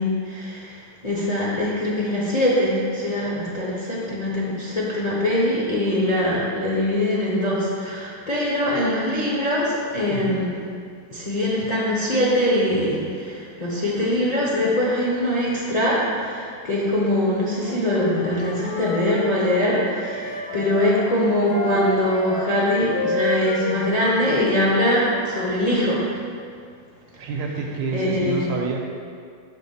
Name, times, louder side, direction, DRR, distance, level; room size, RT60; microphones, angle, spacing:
voice 1, 0.0-10.5 11.1-26.0 27.9-28.5, left 1 dB, 35° left, -6 dB, 0.7 m, -22 dB
voice 2, 10.1-10.4 27.2-28.8, right 4 dB, 75° right, 0 dB, 1.4 m, -28 dB
Wind instrument woodwind instrument, 17.6-25.6, left 2 dB, 65° left, 1.5 m, -30 dB
6.0 x 3.6 x 5.7 m, 2.2 s
omnidirectional pair, 2.0 m